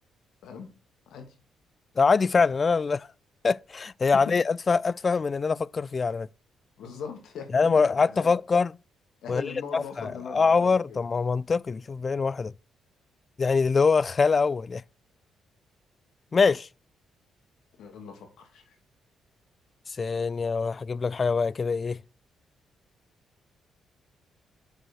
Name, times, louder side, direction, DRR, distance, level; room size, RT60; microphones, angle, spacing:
voice 1, 2.0-3.1 3.4-6.3 7.5-8.7 9.3-12.5 13.4-14.8 16.3-16.7 19.9-22.0, left 4 dB, 35° left, 0.3 m, -24 dB
voice 2, 6.8-7.5 7.9-8.3 9.2-11.0 17.8-18.8, left 6 dB, 75° left, 2.2 m, -41 dB
6.5 x 6.3 x 6.2 m
cardioid pair, 90°, 0 cm